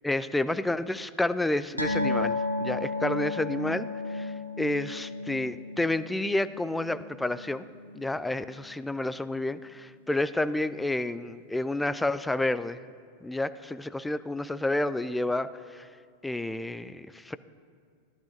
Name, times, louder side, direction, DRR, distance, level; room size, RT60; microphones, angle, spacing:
voice 1, 0.0-7.7 7.9-12.8 13.2-15.9 16.2-17.4, left 2 dB, 5° left, 14 dB, 0.3 m, -30 dB
sound 1, 1.8-8.6 8.9-9.1 9.5-9.6, left 2 dB, 90° left, 0.8 m, -33 dB
15.0 x 11.5 x 2.6 m, 2.2 s
figure-of-eight pair, 90°, 0 cm